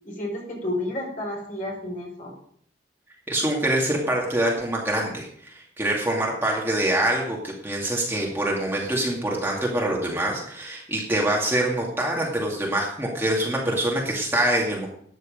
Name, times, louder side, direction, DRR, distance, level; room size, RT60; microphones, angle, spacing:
voice 1, 0.0-2.3, left 1 dB, 45° left, -1 dB, 5.3 m, -31 dB
voice 2, 3.3-14.9, right 1 dB, 10° right, -2 dB, 2.3 m, -25 dB
13.0 x 9.8 x 5.2 m, 0.62 s
head